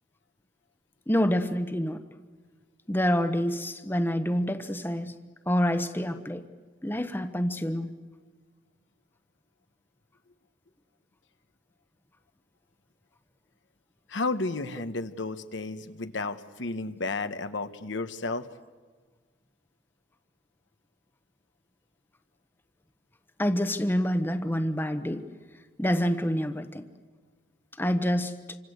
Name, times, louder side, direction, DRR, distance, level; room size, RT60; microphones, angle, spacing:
voice 1, 1.1-2.0 2.9-5.1 5.5-6.4 6.8-7.9 23.4-25.2 25.8-26.8 27.8-28.6, equal, 10° left, 9 dB, 1.0 m, -27 dB
voice 2, 14.1-18.5, left 3 dB, 75° left, 10 dB, 1.1 m, -32 dB
27.5 x 25.5 x 8.0 m, 1.4 s
head